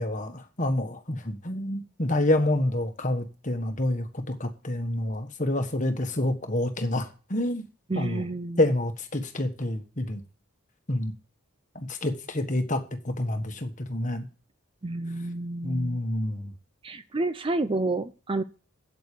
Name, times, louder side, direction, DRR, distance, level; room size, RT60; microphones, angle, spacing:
voice 1, 0.0-7.6 7.9-8.2 8.6-10.2 10.9-11.1 11.7-14.3 15.6-16.5, left 1 dB, 35° left, 1.4 m, -28 dB
voice 2, 7.9-8.7 14.8-16.0 16.8-18.4, right 2 dB, 25° right, 0.5 m, -30 dB
8.4 x 7.9 x 6.7 m
head